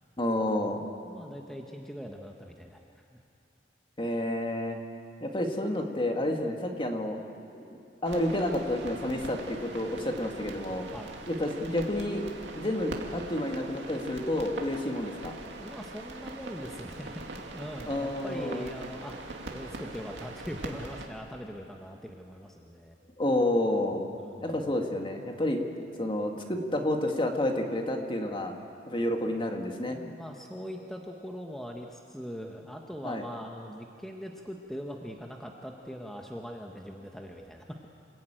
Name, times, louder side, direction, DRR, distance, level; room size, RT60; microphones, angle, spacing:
voice 1, 0.2-0.8 4.0-4.8 5.2-7.2 7.5-10.9 11.3-12.3 12.6-15.3 17.8-18.7 23.2-24.0 24.4-25.6 26.0-28.5 28.9-30.0 33.0-33.2, left 1 dB, 30° left, 3 dB, 2.0 m, -30 dB
voice 2, 1.1-2.8 3.1-3.2 10.9-11.2 15.5-23.0 24.2-24.5 29.9-37.9, equal, ahead, 1 dB, 1.1 m, -41 dB
sound 1, 8.1-21.1, right 2 dB, 75° right, 2.4 m, -42 dB
27.5 x 16.0 x 9.0 m, 2.5 s
head